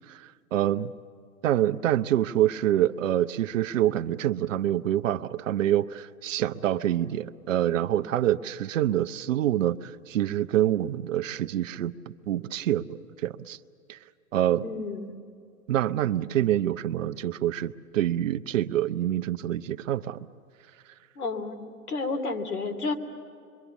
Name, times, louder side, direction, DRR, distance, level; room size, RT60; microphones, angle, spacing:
voice 1, 0.1-0.9 1.4-13.6 13.9-14.0 14.3-14.6 15.7-20.2, right 12 dB, 60° right, 11 dB, 0.8 m, -26 dB
voice 2, 14.6-15.2 21.1-22.9, left 3 dB, 80° left, 3 dB, 3.0 m, -31 dB
26.0 x 23.5 x 7.1 m, 2.5 s
hypercardioid pair, 130°, 44 cm